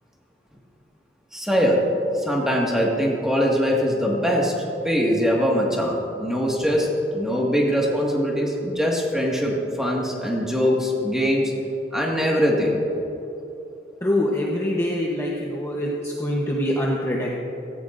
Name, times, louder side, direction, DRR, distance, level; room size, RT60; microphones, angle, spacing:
voice 1, 1.3-1.8 2.1-4.5 4.8-11.5 11.9-12.8, equal, 5° right, -2 dB, 1.8 m, -22 dB
voice 2, 14.0-17.3, left 1 dB, 15° left, -3 dB, 0.9 m, -24 dB
16.5 x 15.0 x 2.6 m, 2.9 s
head